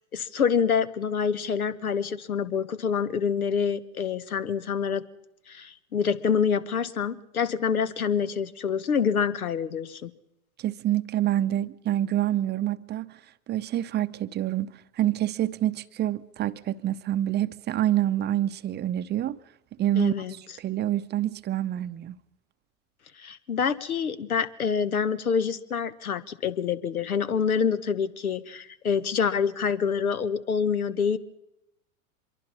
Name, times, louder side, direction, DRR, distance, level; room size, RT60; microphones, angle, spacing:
voice 1, 0.1-5.0 5.5-10.1 20.0-20.3 23.2-31.2, left 6 dB, 80° left, 1.3 m, -26 dB
voice 2, 10.6-13.1 13.5-14.7 15.0-19.4 19.8-20.1 20.6-22.2, right 12 dB, 25° right, 0.7 m, -27 dB
25.0 x 23.0 x 5.5 m
figure-of-eight pair, 90°, 42 cm